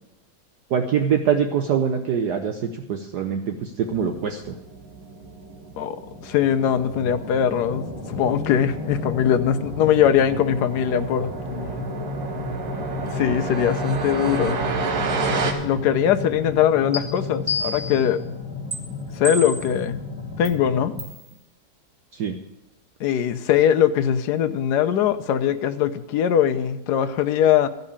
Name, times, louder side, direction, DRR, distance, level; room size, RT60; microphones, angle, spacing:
voice 1, 0.7-4.5 22.1-22.4, right 7 dB, 65° right, 5 dB, 1.3 m, -24 dB
sound 1, 3.8-15.5, right 4 dB, 80° right, 2.1 m, -32 dB
voice 2, 5.8-11.3 13.1-14.7 15.6-18.2 19.2-20.0 20.4-21.0 23.0-27.7, left 9 dB, 65° left, 10 dB, 1.2 m, -21 dB
sound 2, 6.4-21.0, left 2 dB, 5° right, 2.1 m, -33 dB
sound 3, 16.9-17.0 17.5-18.1 18.7-18.8 19.2-19.8 20.4-20.5 21.0-21.2, left 1 dB, 20° right, 2.8 m, -28 dB
14.5 x 5.4 x 8.6 m, 0.94 s
omnidirectional pair, 2.1 m